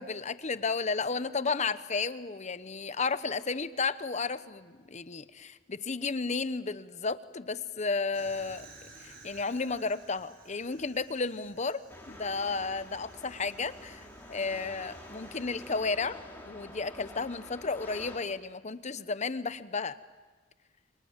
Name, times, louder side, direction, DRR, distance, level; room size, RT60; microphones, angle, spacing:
voice 1, 0.0-8.7 9.0-16.2 16.4-20.0, left 4 dB, 35° left, 14 dB, 0.9 m, -33 dB
Fire, 8.1-15.8, right 3 dB, 50° right, 5.9 m, -55 dB
sound 1, 11.9-18.2, left 1 dB, 10° left, 3.5 m, -48 dB
29.5 x 24.5 x 7.3 m, 1.4 s
head